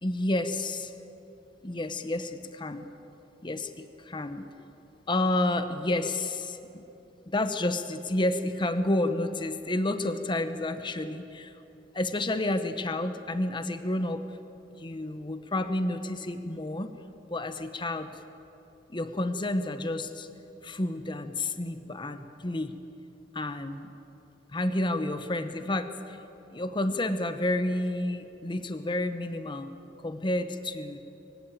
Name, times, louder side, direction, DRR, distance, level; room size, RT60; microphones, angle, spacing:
voice 1, 0.0-0.9 1.6-2.9 3.4-4.5 5.1-6.8 7.3-11.5 11.9-14.4 14.7-16.9 17.3-18.1 18.9-20.3 20.6-22.7 23.3-23.9 24.5-26.2 26.5-29.7 30.0-31.0, left 1 dB, 25° left, 9 dB, 0.9 m, -30 dB
23.5 x 16.5 x 9.2 m, 2.9 s
head